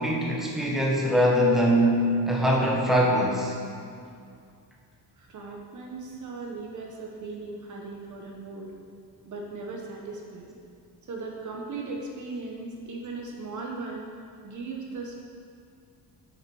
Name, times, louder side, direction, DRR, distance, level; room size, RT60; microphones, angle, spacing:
voice 1, 0.0-1.9 2.3-3.5, equal, ahead, -3 dB, 1.4 m, -22 dB
voice 2, 5.2-8.7 9.2-10.6 11.0-14.1 14.4-15.3, right 3 dB, 45° right, 0 dB, 1.3 m, -38 dB
7.7 x 7.0 x 6.3 m, 2.3 s
cardioid pair, 145°, 41 cm